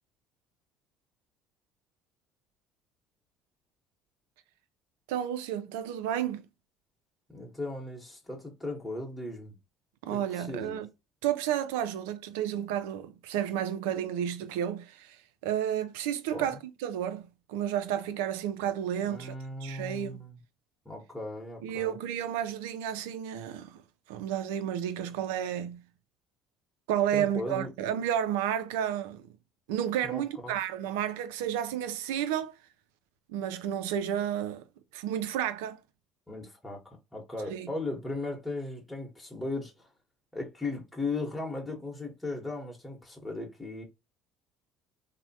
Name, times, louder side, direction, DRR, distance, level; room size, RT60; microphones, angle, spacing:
voice 1, 5.1-6.5 10.0-10.9 11.2-19.3 19.6-20.2 21.6-23.8 24.1-25.8 26.9-29.3 29.7-32.6 33.3-34.7 34.9-35.8 37.5-37.7, right 10 dB, 85° right, 0.4 m, -31 dB
voice 2, 7.3-9.6 10.1-10.8 16.3-16.5 19.0-20.4 20.8-22.0 27.1-27.7 30.0-30.6 36.3-39.9 40.3-43.8, left 2 dB, 5° left, 1.0 m, -37 dB
3.1 x 2.1 x 2.7 m
supercardioid pair, 80°, 0 cm